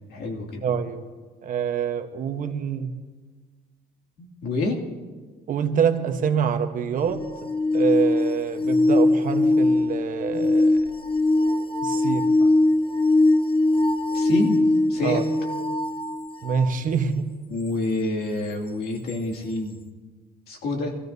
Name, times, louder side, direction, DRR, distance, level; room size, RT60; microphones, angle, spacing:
voice 1, 0.1-0.6 4.2-4.8 14.1-14.6 14.9-15.3 17.5-19.8 20.5-21.0, left 2 dB, 70° left, 1 dB, 2.5 m, -27 dB
voice 2, 0.6-1.1 1.4-3.0 5.5-7.2 7.7-10.8 11.8-12.3 15.0-15.2 16.4-17.4, right 7 dB, 50° right, 7 dB, 1.1 m, -26 dB
sound 1, 7.0-16.8 19.1-19.2, left 2 dB, 30° left, 0.9 m, -21 dB
23.5 x 14.5 x 2.7 m, 1.4 s
cardioid pair, 110°, 17 cm